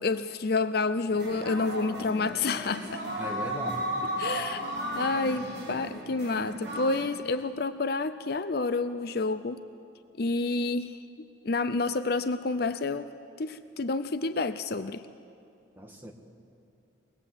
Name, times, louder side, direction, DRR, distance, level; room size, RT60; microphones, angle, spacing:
voice 1, 0.0-3.0 4.2-4.6 5.0-9.6 10.2-11.0 11.4-13.1 13.4-15.0, left 3 dB, 50° left, 11 dB, 0.5 m, -29 dB
sound 1, 1.1-7.0, equal, 65° right, 7.0 m, -35 dB
voice 2, 3.2-3.8 5.0-5.4 15.8-16.1, equal, 10° right, 1 dB, 1.8 m, -39 dB
22.0 x 20.0 x 8.1 m, 2.6 s
head